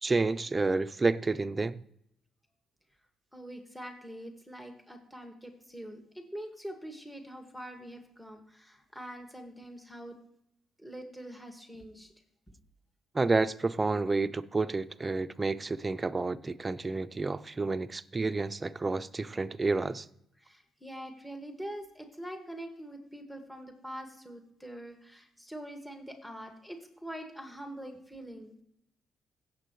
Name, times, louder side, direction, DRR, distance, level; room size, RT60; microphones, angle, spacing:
voice 1, 0.0-1.8 13.1-20.1, right 3 dB, 25° right, 0.6 m, -30 dB
voice 2, 3.3-10.2 10.8-12.1 12.5-12.6 20.4-28.6, right 1 dB, 5° left, 2.0 m, -44 dB
16.5 x 7.6 x 3.2 m
cardioid pair, 90°, 0 cm